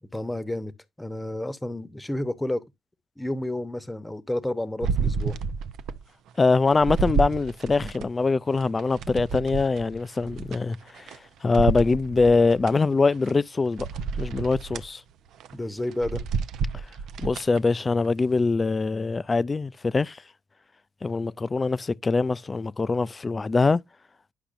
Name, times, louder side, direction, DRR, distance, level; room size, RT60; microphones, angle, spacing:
voice 1, 0.1-0.7 1.0-2.6 3.2-5.4 15.5-16.2, left 1 dB, 10° left, 0.9 m, -30 dB
sound 1, 4.8-6.0 6.4-8.1 8.6-11.2 11.5-12.7 13.3-13.4 13.8-14.9 15.3-15.5 15.9-17.6 18.1-18.2, right 5 dB, 80° right, 0.6 m, -30 dB
voice 2, 6.4-13.9 14.2-15.0 17.2-20.2 21.0-23.8, left 3 dB, 30° left, 0.4 m, -23 dB
10.0 x 5.8 x 2.5 m
cardioid pair, 90°, 0 cm